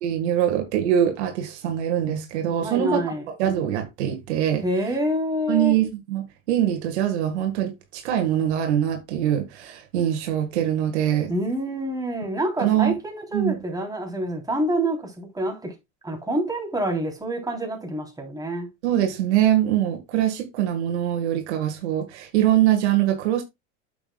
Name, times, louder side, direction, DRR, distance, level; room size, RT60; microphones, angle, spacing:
voice 1, 0.0-3.0 3.4-4.6 5.5-11.3 12.6-12.9 13.3-13.6 18.8-23.4, right 11 dB, 75° right, 1.7 m, -23 dB
voice 2, 2.5-3.2 4.6-5.8 11.3-15.7 16.0-18.7, right 1 dB, 10° right, 3.5 m, -27 dB
8.8 x 7.1 x 2.3 m
hypercardioid pair, 85°, 34 cm